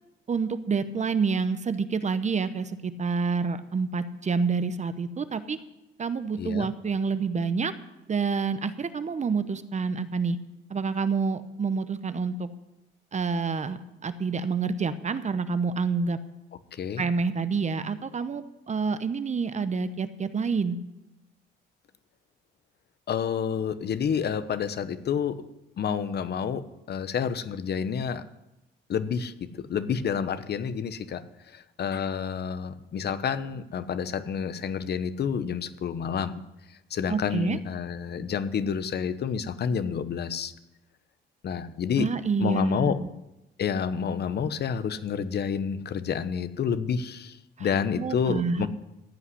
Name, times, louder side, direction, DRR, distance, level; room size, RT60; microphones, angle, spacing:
voice 1, 0.3-5.6 6.0-7.7 8.1-10.4 10.7-12.5 13.1-16.2 17.0-20.8 37.1-37.6 42.0-43.1 47.6-47.7 48.0-48.7, right 5 dB, 35° right, 12 dB, 0.9 m, -28 dB
voice 2, 6.4-6.7 16.7-17.0 23.1-25.4 25.8-28.2 28.9-36.4 36.7-40.5 41.4-42.1 42.4-43.0 43.6-48.7, left 7 dB, 55° left, 13 dB, 0.9 m, -29 dB
14.5 x 5.8 x 9.9 m, 0.94 s
cardioid pair, 90°, 20 cm